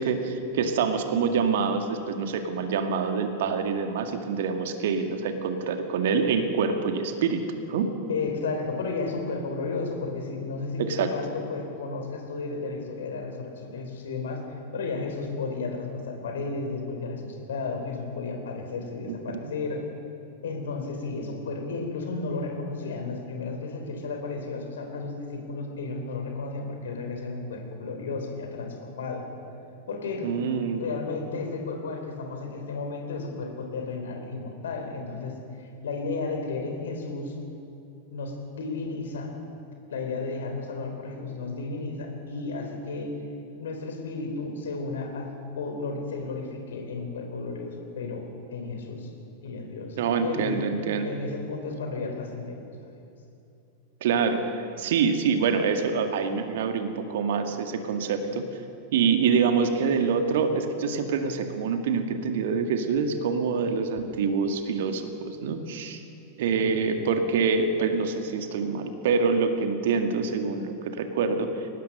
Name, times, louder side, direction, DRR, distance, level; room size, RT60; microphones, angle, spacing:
voice 1, 0.0-7.4 7.7-7.9 10.8-11.1 19.0-19.2 19.4-19.5 30.2-30.9 50.0-51.1 54.0-58.4 58.9-66.0 66.4-71.7, right 5 dB, 55° right, 6 dB, 1.9 m, -26 dB
voice 2, 8.1-19.8 20.4-29.3 29.9-30.4 30.8-37.3 38.1-39.3 39.9-43.1 43.6-49.1 49.4-50.6 51.0-52.6 66.5-66.7, left 3 dB, 65° left, 4 dB, 3.9 m, -33 dB
23.0 x 19.0 x 6.6 m, 2.6 s
figure-of-eight pair, 90°, 0 cm